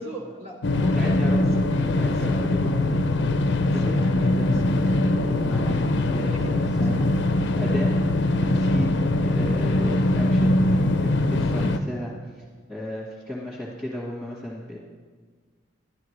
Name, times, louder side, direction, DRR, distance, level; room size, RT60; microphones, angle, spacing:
voice 1, 0.0-2.2 3.7-4.3 6.2-6.5 6.9-7.0, right 1 dB, 30° right, -4 dB, 1.6 m, -38 dB
sound 1, 0.6-11.8, left 1 dB, 60° left, 0.5 m, -22 dB
voice 2, 0.9-1.4 2.0-3.1 3.7-7.1 7.3-7.9 8.4-12.4 12.7-14.8, left 1 dB, ahead, -8 dB, 1.6 m, -35 dB
11.5 x 11.5 x 3.3 m, 1.5 s
head